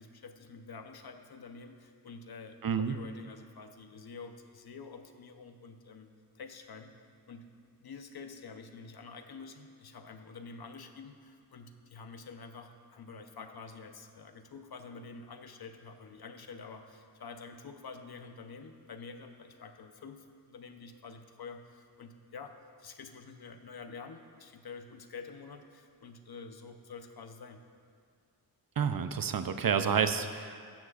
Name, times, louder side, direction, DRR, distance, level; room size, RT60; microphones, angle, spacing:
voice 1, 0.0-6.9 7.3-7.5 7.8-27.6, left 4 dB, 60° left, 6 dB, 1.0 m, -48 dB
voice 2, 2.6-2.9 28.8-30.6, right 7 dB, 55° right, 9 dB, 0.7 m, -29 dB
16.0 x 13.5 x 2.5 m, 2.1 s
wide cardioid pair, 85°, 43 cm